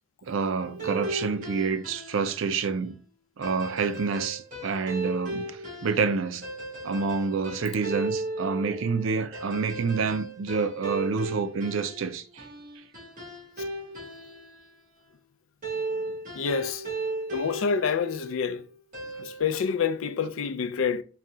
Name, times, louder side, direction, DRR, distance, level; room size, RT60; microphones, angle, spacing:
voice 1, 0.3-3.0 3.4-6.4 6.8-12.4, right 5 dB, 70° right, 0.4 m, -28 dB
sound 1, 0.6-2.5 3.4-14.6 15.6-18.5 18.9-19.4, right 2 dB, 45° right, 1.7 m, -36 dB
voice 2, 16.3-16.8 17.3-18.6 19.2-21.0, left 6 dB, 80° left, 0.4 m, -27 dB
4.2 x 2.3 x 3.6 m
head